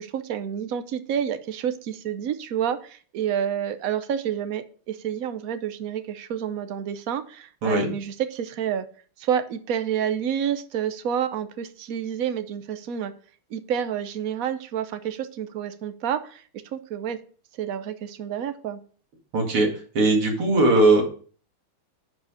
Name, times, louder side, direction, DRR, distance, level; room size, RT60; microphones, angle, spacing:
voice 1, 0.0-8.9 9.2-13.1 13.5-16.4 16.7-17.2 17.6-18.8, right 9 dB, 65° right, 11 dB, 0.8 m, -29 dB
voice 2, 19.3-19.7 19.9-21.0, right 2 dB, 85° right, 0 dB, 3.2 m, -19 dB
10.0 x 4.9 x 5.0 m, 0.43 s
omnidirectional pair, 2.4 m